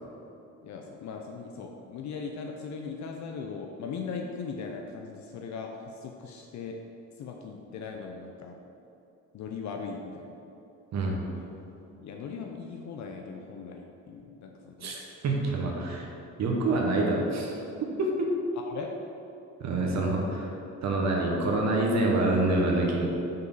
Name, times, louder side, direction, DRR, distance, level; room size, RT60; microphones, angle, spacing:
voice 1, 0.6-6.8 7.2-8.6 9.3-10.4 12.0-15.0 18.5-18.9, left 5 dB, 65° left, 2 dB, 0.6 m, -39 dB
voice 2, 15.2-16.1 16.4-17.5 18.0-18.3 19.6-20.5 20.8-23.1, right 2 dB, 65° right, -1 dB, 1.0 m, -26 dB
5.3 x 4.0 x 5.4 m, 2.8 s
cardioid pair, 90°, 30 cm